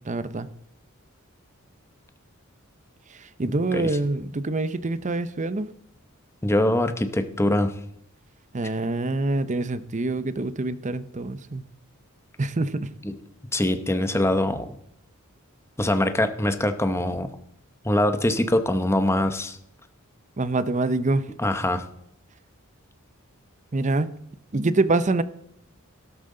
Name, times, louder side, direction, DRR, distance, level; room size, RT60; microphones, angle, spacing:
voice 1, 0.1-0.5 3.2-5.7 8.5-11.6 12.4-12.9 20.4-21.3 23.7-24.1 24.5-25.2, right 2 dB, 35° right, 14 dB, 0.7 m, -25 dB
voice 2, 6.4-7.7 13.0-13.1 13.5-14.7 15.8-17.3 17.8-19.6 21.4-21.8, left 1 dB, 10° left, 9 dB, 0.9 m, -23 dB
13.0 x 12.0 x 3.8 m, 0.73 s
head